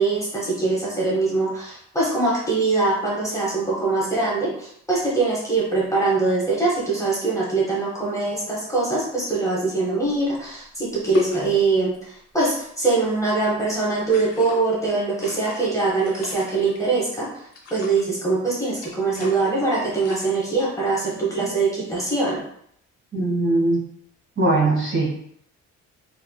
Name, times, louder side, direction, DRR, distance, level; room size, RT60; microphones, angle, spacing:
voice 1, 0.0-17.4 17.7-22.4, right 3 dB, 10° left, -5 dB, 1.0 m, -23 dB
sound 1, 10.2-10.3 11.1-11.9 12.9-13.3 14.0-14.6 15.1-16.8 17.5-18.1 18.8-19.5 19.9-20.3, left 3 dB, 50° left, 0.8 m, -32 dB
voice 2, 23.1-23.8 24.4-25.1, right 2 dB, 40° right, -4 dB, 1.3 m, -20 dB
3.1 x 2.8 x 2.2 m, 0.68 s
cardioid pair, 90°, 30 cm